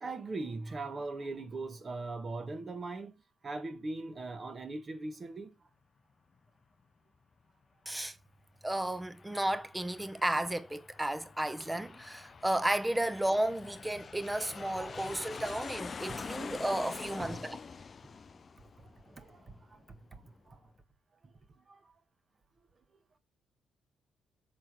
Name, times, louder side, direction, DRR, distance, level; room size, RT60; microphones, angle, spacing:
voice 1, 0.0-3.1 3.4-5.5 14.9-15.0 16.1-16.3 17.2-17.4 19.1-20.2 20.5-20.6 21.7-21.8, right 3 dB, 35° right, 1.2 m, -40 dB
voice 2, 7.9-8.2 8.6-17.6, right 1 dB, 10° right, 0.7 m, -33 dB
Aircraft, 8.7-19.8, left 5 dB, 40° left, 0.3 m, -46 dB
6.2 x 4.4 x 6.2 m
cardioid pair, 90°, 0 cm